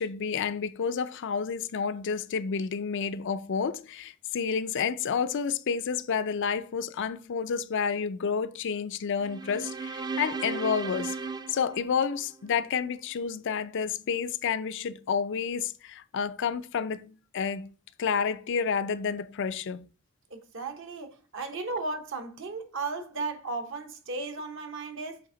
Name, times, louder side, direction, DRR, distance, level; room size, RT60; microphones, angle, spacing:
voice 1, 0.0-17.7 18.0-19.8, left 6 dB, 60° left, 0.4 m, -30 dB
sound 1, 9.2-12.6, right 4 dB, 20° right, 0.4 m, -36 dB
voice 2, 20.3-25.2, right 3 dB, 60° right, 1.0 m, -35 dB
7.7 x 3.5 x 3.8 m
head